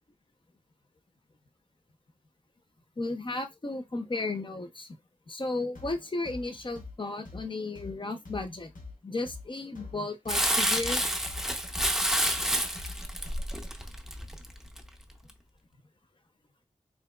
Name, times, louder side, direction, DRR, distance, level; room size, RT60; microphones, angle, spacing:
voice 1, 3.0-4.9 5.3-8.7 9.0-11.0, left 2 dB, 35° left, 0.6 m, -34 dB
sound 1, 5.7-13.7, left 3 dB, 90° left, 1.1 m, -45 dB
Crumpling crinkling, 10.3-14.8 15.3-15.4, equal, ahead, 0.6 m, -29 dB
3.7 x 2.9 x 2.3 m
wide cardioid pair, 75°, 14 cm